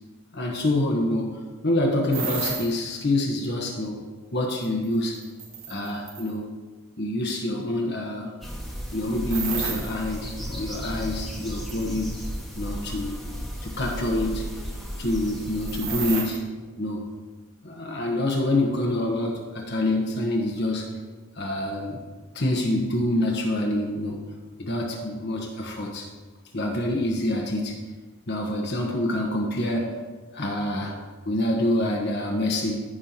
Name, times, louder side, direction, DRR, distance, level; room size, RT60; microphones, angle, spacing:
voice 1, 0.3-4.0 4.3-5.2 5.7-6.5 7.0-8.3 8.9-12.1 12.6-13.2 13.6-14.5 15.0-16.5 16.8-17.1 17.6-21.0 21.3-22.0 22.3-24.2 24.6-26.1 26.5-27.8 28.3-29.9 30.3-31.0 31.2-32.8, left 1 dB, 50° left, -1 dB, 1.1 m, -26 dB
sound 1, 2.1-2.7 4.6-6.3 9.3-9.9 11.7-12.4 12.9-13.0 13.8-14.0 15.6-16.4, right 6 dB, 80° right, 1.5 m, -32 dB
sound 2, 8.4-16.2, equal, ahead, 1.3 m, -35 dB
15.0 x 5.5 x 2.9 m, 1.4 s
head